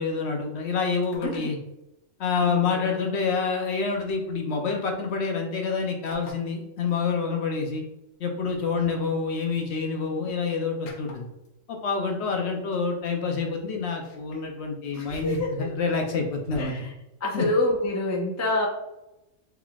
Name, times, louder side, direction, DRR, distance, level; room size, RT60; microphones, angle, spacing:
voice 1, 0.0-1.6 2.2-7.8 8.2-11.3 11.7-16.9 17.3-17.5, left 5 dB, 65° left, 2 dB, 0.8 m, -27 dB
sound 1, 1.0-1.5 2.9-3.0 4.5-4.9 6.1-6.4 6.9-7.0 8.4-9.6 10.9-11.5 12.4-12.5 12.7-12.9 13.9-14.4 14.9-16.7, left 1 dB, 80° left, 1.1 m, -46 dB
voice 2, 1.2-1.5 2.4-3.0 8.7-8.9 14.9-15.7 16.6-16.9 17.2-18.7, left 1 dB, 25° left, -1 dB, 0.3 m, -27 dB
3.8 x 3.4 x 2.3 m, 0.92 s
omnidirectional pair, 1.3 m